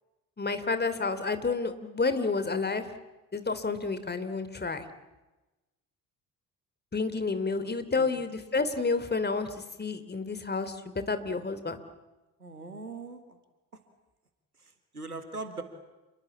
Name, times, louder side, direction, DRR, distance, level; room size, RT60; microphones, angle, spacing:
voice 1, 0.4-2.9 3.3-4.8 6.9-9.5 9.8-11.8, left 4 dB, 20° left, 11 dB, 3.1 m, -30 dB
voice 2, 12.4-13.4 14.6-15.6, right 3 dB, 90° right, 9 dB, 1.9 m, -40 dB
29.0 x 22.0 x 8.6 m, 1.1 s
figure-of-eight pair, 50°, 44 cm